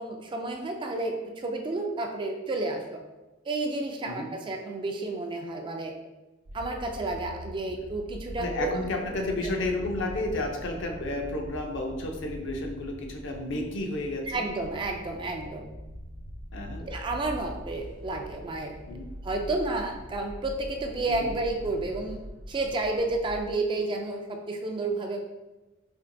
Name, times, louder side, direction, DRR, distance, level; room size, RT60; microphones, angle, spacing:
voice 1, 0.0-3.0 3.5-5.9 6.5-8.7 9.4-9.5 14.3-15.6 16.8-18.7 19.2-22.2 22.5-25.2, right 2 dB, 25° right, 3 dB, 0.3 m, -31 dB
sound 1, 6.5-13.8 14.5-17.0, left 1 dB, 80° left, 1.3 m, -48 dB
sound 2, 6.5-23.4, equal, 65° right, 0.7 m, -43 dB
voice 2, 8.4-14.4 16.5-16.8 18.9-19.1 21.1-21.3, left 2 dB, 65° left, 2 dB, 0.6 m, -32 dB
4.3 x 2.8 x 2.6 m, 1.1 s
head